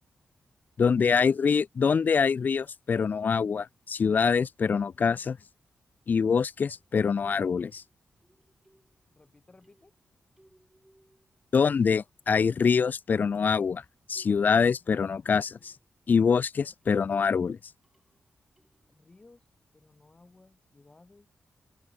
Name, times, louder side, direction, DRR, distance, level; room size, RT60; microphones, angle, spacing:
voice 1, 0.8-5.4 6.1-7.8 11.5-13.8 14.1-15.7 16.1-17.6, left 6 dB, 50° left, 0.4 m, -25 dB
sound 1, 2.9-3.0 4.7-5.3 6.6-7.2 7.7-9.2 9.6-11.5 11.8-12.4 13.1-16.1 16.6-17.2 17.8-18.9, right 1 dB, 10° right, 6.8 m, -67 dB
voice 2, 9.1-9.9 18.9-21.3, left 3 dB, 30° left, 2.2 m, -58 dB
open air
cardioid pair, 70°, 4 cm